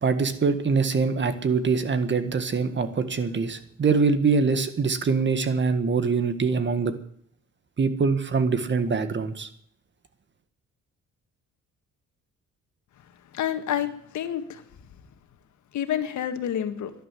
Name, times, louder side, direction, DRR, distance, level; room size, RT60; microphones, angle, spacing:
voice 1, 0.0-6.9 7.8-9.5, right 4 dB, 40° right, 10 dB, 1.7 m, -24 dB
voice 2, 13.3-14.6 15.7-16.9, left 10 dB, 70° left, 8 dB, 1.9 m, -28 dB
12.0 x 11.0 x 9.2 m, 0.64 s
cardioid pair, 90°, 30 cm